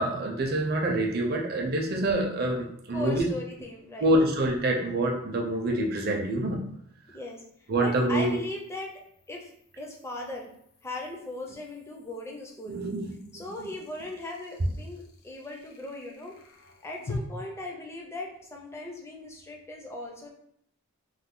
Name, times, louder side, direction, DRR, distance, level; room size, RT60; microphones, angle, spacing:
voice 1, 0.0-3.3 4.0-6.6 7.7-8.4 12.7-13.1 13.6-13.7, right 1 dB, 45° right, 1 dB, 0.5 m, -26 dB
voice 2, 2.9-4.1 7.1-7.4 7.8-8.9 9.3-10.5 10.8-12.8 13.3-16.3 16.8-20.3, left 2 dB, 10° left, 0 dB, 0.4 m, -38 dB
sound 1, 3.5-3.6 7.0-17.2, left 5 dB, 75° left, 0.6 m, -49 dB
3.1 x 2.1 x 3.7 m, 0.71 s
head